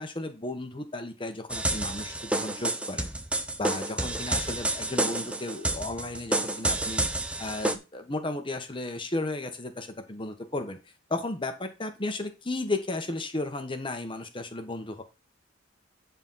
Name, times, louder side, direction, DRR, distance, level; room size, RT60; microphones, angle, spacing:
voice 1, 0.0-3.1 3.6-7.0 7.4-10.8 11.1-15.0, left 2 dB, 25° left, 6 dB, 1.4 m, -34 dB
sound 1, 1.5-7.7, right 2 dB, 5° right, 0.8 m, -29 dB
10.0 x 4.2 x 5.7 m, 0.28 s
head